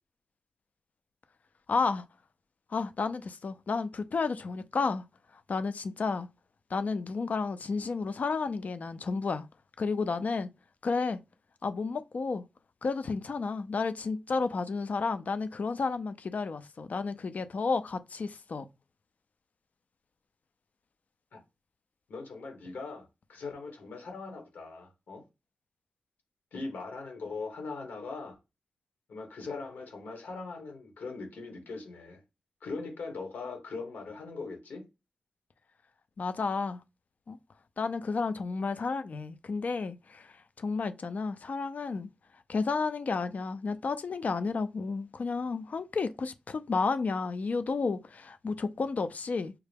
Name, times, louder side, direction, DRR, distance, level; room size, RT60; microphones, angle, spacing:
voice 1, 1.7-2.0 2.7-5.0 5.5-6.3 6.7-9.5 9.8-10.5 10.8-11.2 11.6-12.4 12.8-18.7 36.2-36.8 37.3-37.4 37.8-42.1 42.5-49.5, left 4 dB, 60° left, 0.4 m, -31 dB
voice 2, 22.1-25.2 26.5-28.3 29.1-32.2 32.6-34.8, left 3 dB, 90° left, 1.3 m, -40 dB
5.6 x 2.1 x 3.4 m
cardioid pair, 55°, 3 cm